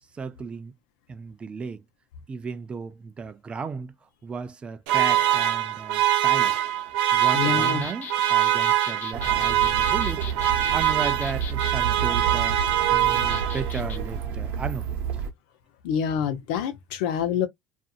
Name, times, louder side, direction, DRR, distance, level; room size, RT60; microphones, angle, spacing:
voice 1, 0.1-0.7 1.1-1.8 2.3-3.9 4.2-6.6 7.1-10.3 10.7-12.6 12.9-14.8, right 5 dB, 25° right, 0.5 m, -34 dB
sound 1, 4.9-13.9, right 12 dB, 80° right, 0.7 m, -23 dB
sound 2, 7.2-11.8 13.1-14.0, left 8 dB, 45° left, 0.6 m, -39 dB
voice 2, 7.3-7.9 15.8-17.5, left 8 dB, 80° left, 0.7 m, -26 dB
sound 3, 9.1-15.3, right 7 dB, 60° right, 0.9 m, -30 dB
2.6 x 2.5 x 2.4 m
supercardioid pair, 120°, 5 cm